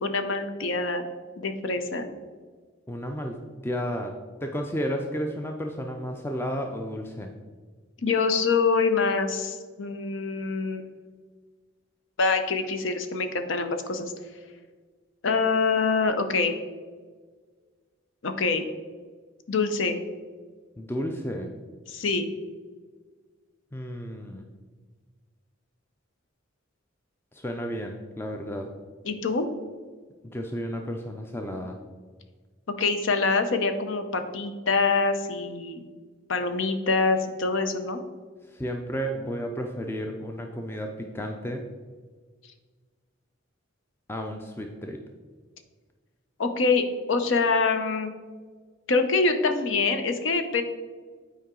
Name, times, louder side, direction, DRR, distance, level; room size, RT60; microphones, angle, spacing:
voice 1, 0.0-1.0 1.4-2.1 8.0-11.0 12.2-14.1 15.2-16.5 18.2-18.6 19.5-20.0 21.9-22.3 29.0-29.4 32.8-35.8 36.3-38.0 46.4-48.1 48.9-50.6, left 4 dB, 70° left, 8 dB, 0.7 m, -25 dB
voice 2, 2.9-7.3 20.8-21.5 23.7-24.5 27.3-28.7 30.2-31.8 38.5-41.7 44.1-45.0, equal, 10° left, 3 dB, 0.4 m, -32 dB
8.3 x 4.7 x 3.7 m, 1.5 s
head